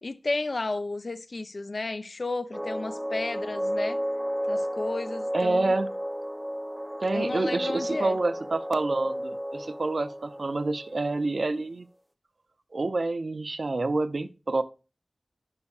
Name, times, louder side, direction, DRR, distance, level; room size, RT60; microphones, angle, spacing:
voice 1, 0.0-4.0 4.5-5.7 7.1-8.2, left 2 dB, 60° left, 0.5 m, -33 dB
sound 1, 2.5-11.5, equal, 5° right, 0.5 m, -32 dB
voice 2, 5.3-5.9 7.0-11.9 12.7-14.6, right 3 dB, 65° right, 0.5 m, -28 dB
9.7 x 5.3 x 2.3 m
wide cardioid pair, 60°, 0 cm